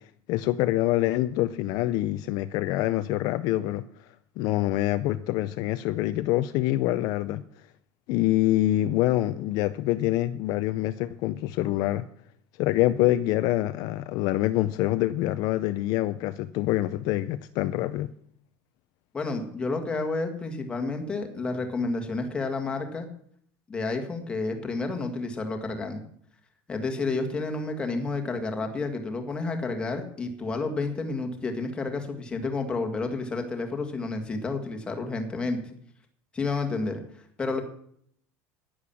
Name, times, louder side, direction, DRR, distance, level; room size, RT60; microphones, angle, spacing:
voice 1, 0.3-4.1 4.4-7.4 8.1-12.0 12.6-18.1, left 15 dB, 50° left, 11 dB, 0.5 m, -25 dB
voice 2, 19.1-23.1 23.7-26.0 26.7-35.6 36.3-37.6, left 3 dB, 10° left, 4 dB, 1.8 m, -30 dB
11.0 x 10.5 x 7.1 m, 0.64 s
cardioid pair, 175°, 8 cm